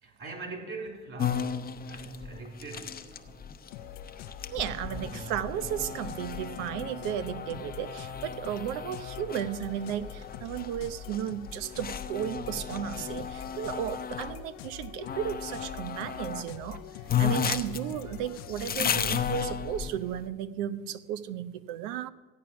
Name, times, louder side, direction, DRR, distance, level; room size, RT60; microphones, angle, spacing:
voice 1, 0.0-3.4 4.8-5.6, right 3 dB, 45° right, 3.5 m, -42 dB
sound 1, 1.2-14.4 15.0-16.5 16.7-16.8 17.1-20.2, left 8 dB, 30° left, 0.8 m, -34 dB
sound 2, 3.7-18.8, left 9 dB, 90° left, 0.8 m, -45 dB
voice 2, 4.5-16.8 17.2-22.1, right 10 dB, 80° right, 0.8 m, -34 dB
15.0 x 8.8 x 6.0 m
supercardioid pair, 95°, 30 cm